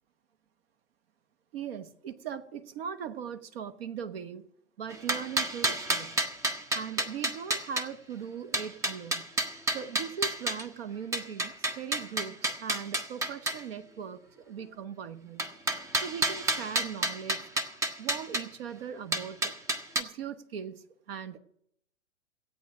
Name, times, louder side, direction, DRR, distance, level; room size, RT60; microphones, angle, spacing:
voice 1, 1.5-4.5 4.8-6.2 6.7-9.3 9.7-15.5 16.0-17.5 18.0-19.5 20.0-21.4, right 7 dB, 50° right, 12 dB, 1.1 m, -39 dB
sound 1, 4.9-7.8 8.5-10.6 11.1-13.6 15.4-18.4 19.1-20.0, right 1 dB, 10° right, 0.6 m, -30 dB
16.0 x 8.9 x 6.0 m, 0.73 s
figure-of-eight pair, 110°, 39 cm